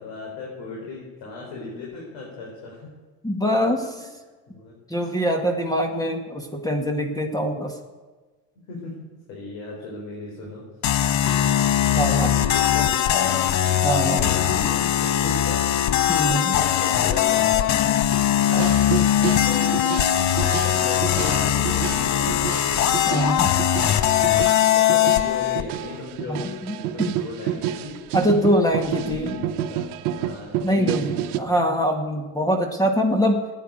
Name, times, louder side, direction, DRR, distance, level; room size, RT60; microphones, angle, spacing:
voice 1, 0.0-2.9 4.0-4.1 4.5-4.7 8.7-10.6 11.9-13.4 14.2-15.7 16.3-17.9 18.4-20.3 20.6-22.8 24.5-28.0 28.5-28.6 28.9-31.5, left 3 dB, 75° left, -3 dB, 4.5 m, -36 dB
voice 2, 3.2-4.0 4.9-7.7 12.0-12.3 13.8-14.3 16.1-16.5 18.5-18.7 23.1-23.5 26.3-27.1 28.1-29.3 30.6-31.1 31.4-33.4, equal, 10° left, 4 dB, 1.9 m, -23 dB
sound 1, 10.8-25.6, left 11 dB, 40° left, 0.8 m, -20 dB
sound 2, 18.5-31.4, right 11 dB, 80° right, 1.0 m, -30 dB
13.5 x 9.7 x 9.2 m, 1.3 s
supercardioid pair, 95°, 43 cm